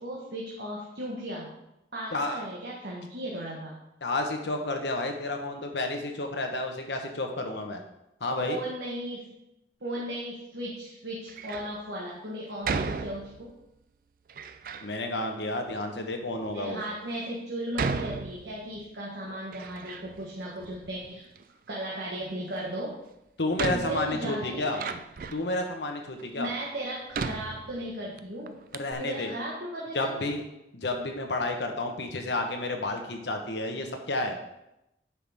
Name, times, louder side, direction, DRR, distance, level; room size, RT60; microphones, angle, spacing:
voice 1, 0.0-1.5 1.9-3.8 8.4-9.3 9.8-13.5 16.5-21.3 21.7-23.0 23.7-24.9 26.4-28.6 29.0-30.1, right 1 dB, 75° right, -4 dB, 1.4 m, -36 dB
voice 2, 2.1-2.5 4.0-7.8 8.2-8.6 12.5-12.6 14.8-16.8 23.4-24.8 25.3-26.5 28.7-29.3 29.9-30.4 30.7-34.4, left 2 dB, 85° left, 4 dB, 1.1 m, -31 dB
Door, 11.3-11.8 12.6-13.6 14.3-14.9 15.7-15.8 16.5-16.6 17.7-18.9 19.2-20.3 20.6-21.4 22.8-22.9 23.6-25.5 26.2-26.3 27.1-28.2 28.5-28.6 28.7-28.9, right 4 dB, 50° right, 0.4 m, -35 dB
9.5 x 5.7 x 3.6 m, 0.89 s
head